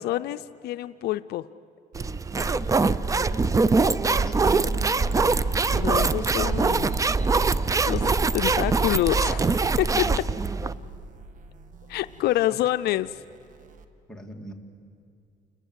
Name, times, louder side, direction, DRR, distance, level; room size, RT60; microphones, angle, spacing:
voice 1, 0.0-1.4 5.7-6.9 7.9-10.1 11.9-13.2, left 15 dB, 70° left, 11 dB, 0.5 m, -27 dB
sound 1, 1.9-13.8, right 2 dB, 50° right, 1.7 m, -47 dB
sound 2, 2.0-10.7, right 4 dB, 20° right, 0.5 m, -23 dB
voice 2, 4.1-5.0 9.8-10.3 10.6-10.9 12.5-12.6 14.1-14.5, right 1 dB, 5° left, 0 dB, 2.8 m, -41 dB
29.0 x 21.0 x 8.1 m, 2.4 s
cardioid pair, 110°, 17 cm